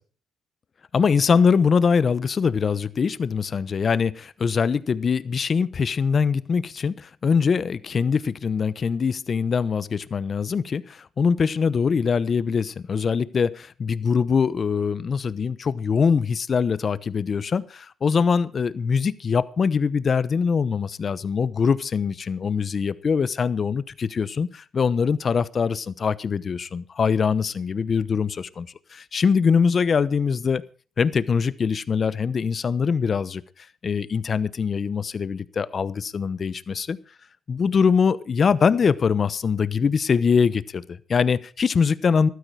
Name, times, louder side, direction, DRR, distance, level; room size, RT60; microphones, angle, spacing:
voice 1, 0.9-30.6 31.0-33.4 33.8-37.0 37.5-42.3, left 6 dB, 45° left, 0.9 m, -23 dB
14.5 x 12.5 x 4.8 m
cardioid pair, 90°, 0 cm